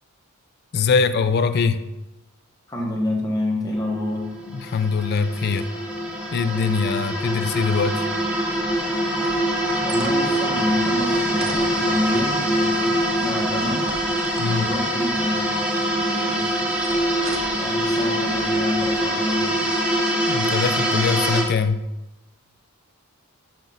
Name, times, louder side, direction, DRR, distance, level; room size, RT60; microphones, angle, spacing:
voice 1, 0.7-1.8 4.5-5.7 6.3-8.1 14.4-14.7 20.2-21.8, left 5 dB, 45° left, 11 dB, 0.4 m, -22 dB
voice 2, 2.7-4.3 9.8-13.9 14.4-15.5 16.0-16.6 17.5-19.7, left 1 dB, 15° left, -2 dB, 1.2 m, -28 dB
sound 1, 3.7-21.4, right 1 dB, 5° right, 1.2 m, -24 dB
sound 2, 9.2-10.2 11.4-12.5 13.6-14.9 16.8-17.7 18.5-19.0, right 3 dB, 65° right, 0.8 m, -39 dB
6.1 x 6.0 x 3.8 m, 1.0 s
head